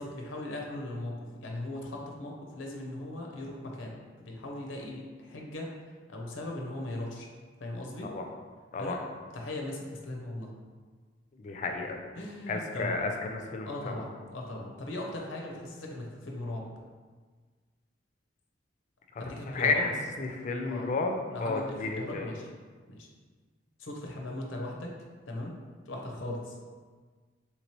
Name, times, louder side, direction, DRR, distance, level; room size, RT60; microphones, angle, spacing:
voice 1, 0.0-5.7 6.1-7.3 7.6-8.1 8.8-9.0 9.3-10.5 12.2-12.9 13.7-16.7 19.2-19.8 20.6-20.9 21.3-22.5 22.9-23.1 23.8-24.9 25.3-25.5 25.9-26.6, left 1 dB, 90° left, 0 dB, 0.6 m, -38 dB
voice 2, 11.4-12.0 12.5-14.0 19.1-22.2, left 3 dB, 40° left, 3 dB, 0.3 m, -32 dB
3.4 x 2.9 x 2.9 m, 1.5 s
head